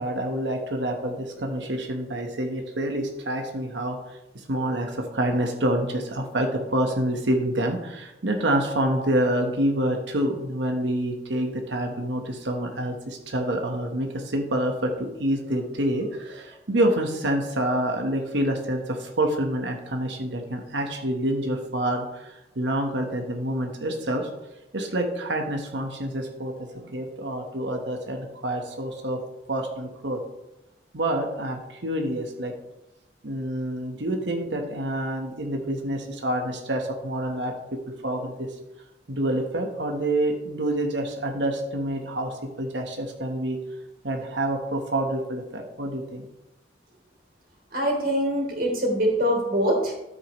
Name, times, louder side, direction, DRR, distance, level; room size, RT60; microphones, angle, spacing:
voice 1, 0.0-24.3 24.7-26.5 26.8-29.2 29.5-30.2 30.9-32.5 33.2-37.5 38.0-38.5 39.1-43.6 44.0-46.3, right 1 dB, 75° right, 3 dB, 1.2 m, -27 dB
voice 2, 47.7-49.9, equal, 55° right, 0 dB, 3.4 m, -23 dB
12.5 x 8.1 x 3.1 m, 0.95 s
head